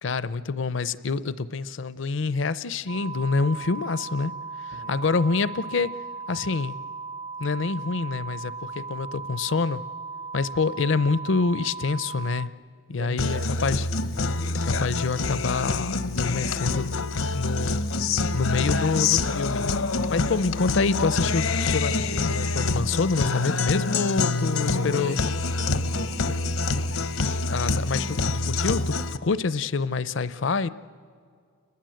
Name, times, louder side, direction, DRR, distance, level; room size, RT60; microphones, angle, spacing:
voice 1, 0.0-4.3 4.6-5.9 6.3-6.8 7.4-9.8 10.3-12.5 12.9-13.9 14.6-17.0 17.3-17.8 18.3-19.7 20.1-25.2 27.5-29.0 29.2-30.7, left 4 dB, 60° left, 16 dB, 0.6 m, -27 dB
sound 1, 2.9-12.5, right 4 dB, 35° right, 0.5 m, -37 dB
voice 2, 4.7-5.0 12.9-13.9 24.2-25.2 25.6-26.7, right 2 dB, 55° right, 8 dB, 0.8 m, -41 dB
Guitar, 13.2-29.2, left 3 dB, 80° left, 0.9 m, -26 dB
29.0 x 20.5 x 7.7 m, 2.2 s
head